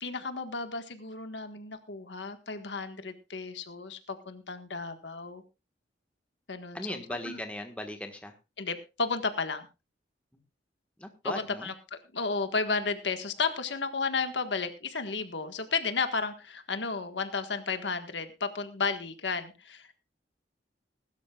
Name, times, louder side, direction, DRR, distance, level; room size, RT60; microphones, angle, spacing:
voice 1, 0.0-5.4 6.5-7.4 8.6-9.7 11.2-19.9, left 4 dB, 80° left, 8 dB, 1.6 m, -33 dB
voice 2, 6.7-8.4 10.3-10.4 11.0-11.7, left 1 dB, 5° left, 5 dB, 1.5 m, -38 dB
20.5 x 12.5 x 2.4 m, 0.27 s
head